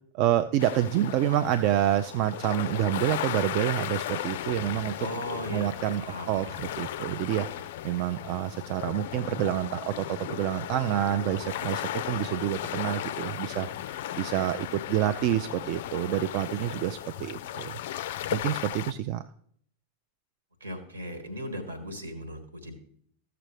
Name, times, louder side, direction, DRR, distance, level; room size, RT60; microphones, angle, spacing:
voice 1, 0.1-4.9 5.5-6.5 6.8-17.7 18.3-19.2, right 12 dB, 45° right, 10 dB, 0.3 m, -28 dB
sound 1, 0.6-18.9, left 12 dB, 55° left, 0.3 m, -36 dB
voice 2, 5.0-5.7 6.0-6.6 20.6-22.7, equal, 75° right, 8 dB, 1.6 m, -37 dB
14.0 x 6.8 x 3.1 m, 0.63 s
figure-of-eight pair, 90°, 0 cm